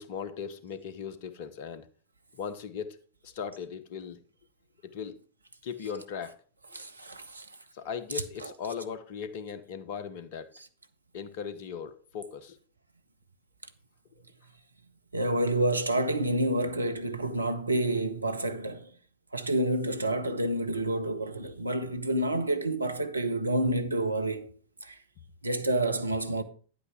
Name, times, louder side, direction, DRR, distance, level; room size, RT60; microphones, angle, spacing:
voice 1, 0.0-1.9 2.4-4.2 4.8-5.1 5.6-6.4 6.7-6.8 7.7-10.5 11.1-12.6, left 7 dB, 50° left, 0.9 m, -38 dB
voice 2, 6.7-7.5 8.4-8.5 15.1-18.9 19.3-24.5 24.8-25.0 25.4-26.4, right 1 dB, 80° right, 0.7 m, -29 dB
9.3 x 8.4 x 3.5 m
figure-of-eight pair, 90°, 0 cm